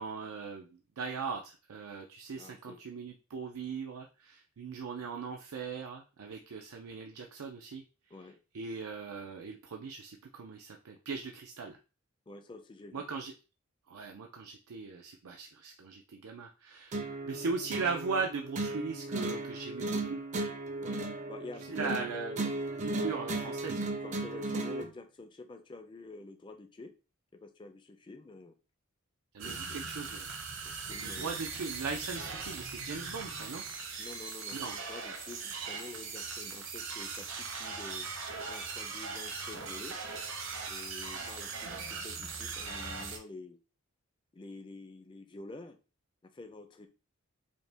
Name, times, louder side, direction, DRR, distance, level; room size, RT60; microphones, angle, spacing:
voice 1, 0.0-7.8 8.5-11.8 12.9-13.3 13.9-20.2 21.7-22.4 22.8-23.9 29.3-30.2 31.0-33.6 34.5-34.7 41.2-41.3, right 4 dB, 90° right, 2 dB, 0.5 m, -39 dB
voice 2, 2.4-2.8 8.1-8.4 12.3-13.1 20.8-22.5 24.0-26.9 27.4-28.6 29.4-29.6 30.6-31.4 34.0-38.1 38.5-40.0 40.7-43.6 44.3-45.8 46.2-46.9, left 3 dB, 20° left, 7 dB, 0.4 m, -48 dB
sound 1, 16.9-24.9, right 2 dB, 35° right, 0.5 m, -36 dB
sound 2, 29.4-43.2, right 4 dB, 60° right, 0.9 m, -40 dB
5.2 x 2.2 x 3.3 m, 0.33 s
head